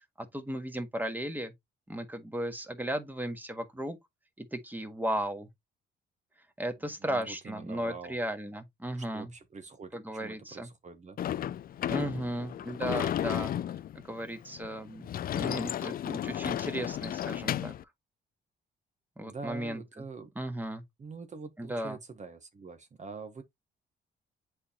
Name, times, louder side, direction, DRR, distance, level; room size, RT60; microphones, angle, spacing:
voice 1, 0.2-1.5 1.9-4.0 4.4-5.5 6.6-9.3 9.9-10.7 11.9-13.5 14.1-17.7 19.2-19.8 20.3-20.8 21.6-22.0, right 1 dB, 10° right, 1.5 m, -35 dB
voice 2, 6.8-8.2 8.9-11.2 19.2-20.3 21.0-23.4, right 4 dB, 35° right, 1.0 m, -45 dB
Sliding door / Slam, 11.2-17.8, left 11 dB, 50° left, 0.4 m, -33 dB
7.8 x 4.4 x 2.9 m
cardioid pair, 90°, 20 cm